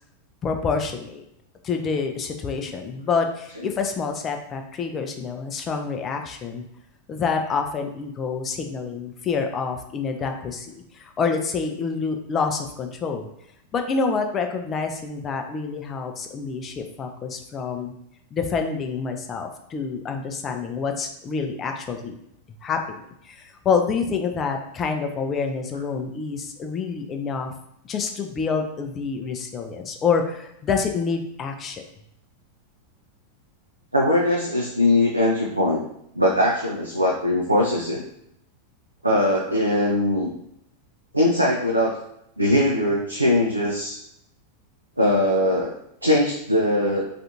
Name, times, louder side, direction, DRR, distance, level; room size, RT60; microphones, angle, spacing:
voice 1, 0.4-1.2 1.6-6.7 7.1-13.3 13.7-17.9 18.3-22.2 22.6-22.8 23.2-27.5 27.8-31.8, left 5 dB, 25° left, 4 dB, 0.3 m, -27 dB
voice 2, 33.9-35.8 36.2-38.0 39.0-40.3 41.1-41.9 42.4-44.0 45.0-45.8 46.0-47.1, left 1 dB, 85° right, -2 dB, 0.4 m, -21 dB
2.4 x 2.4 x 2.7 m, 0.76 s
figure-of-eight pair, 90°, 0 cm